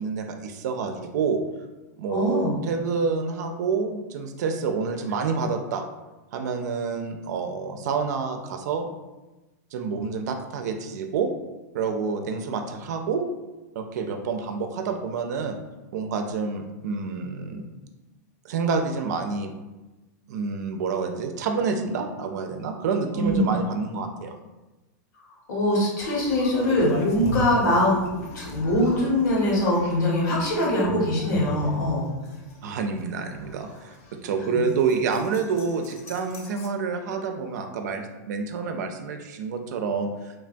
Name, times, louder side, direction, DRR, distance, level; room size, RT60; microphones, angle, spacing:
voice 1, 0.0-1.4 2.0-5.8 6.3-8.9 9.7-11.3 11.7-13.3 13.8-15.6 15.9-17.7 18.4-19.5 20.3-24.4 32.6-34.0 34.2-40.3, right 5 dB, 70° right, 5 dB, 0.4 m, -28 dB
voice 2, 2.1-2.6 23.1-23.5 25.5-32.1 34.4-34.6, left 1 dB, 80° left, -5 dB, 1.2 m, -23 dB
sound 1, 26.0-36.7, left 2 dB, 55° left, 0.5 m, -39 dB
3.1 x 2.2 x 2.5 m, 1.1 s
supercardioid pair, 145°, 10 cm